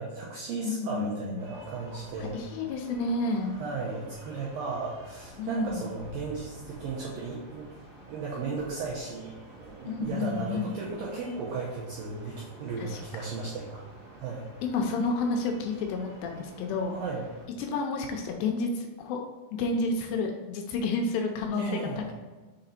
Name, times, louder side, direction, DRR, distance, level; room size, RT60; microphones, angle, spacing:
voice 1, 0.0-2.4 3.6-7.7 8.1-13.8 14.2-14.5 16.9-17.3 21.6-22.1, right 4 dB, 90° right, -4 dB, 2.0 m, -35 dB
voice 2, 0.6-1.4 2.2-3.6 5.4-5.9 9.8-10.8 12.8-13.3 14.6-16.9 17.6-19.2 19.5-22.1, left 3 dB, 80° left, 2 dB, 2.6 m, -30 dB
sound 1, 1.4-17.5, right 1 dB, 45° right, 2.0 m, -50 dB
6.6 x 3.9 x 4.2 m, 1.3 s
omnidirectional pair, 5.2 m